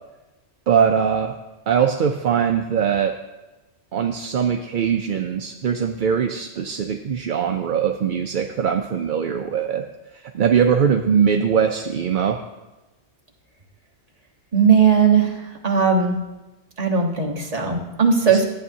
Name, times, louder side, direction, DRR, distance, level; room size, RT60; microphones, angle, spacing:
voice 1, 0.7-1.3 1.7-3.1 3.9-9.8 10.1-12.4 18.3-18.4, right 7 dB, 55° right, 4 dB, 0.6 m, -21 dB
voice 2, 14.5-15.3 15.6-16.1 16.8-18.4, right 6 dB, 35° right, 0 dB, 1.3 m, -17 dB
13.5 x 8.7 x 2.7 m, 1.1 s
omnidirectional pair, 1.2 m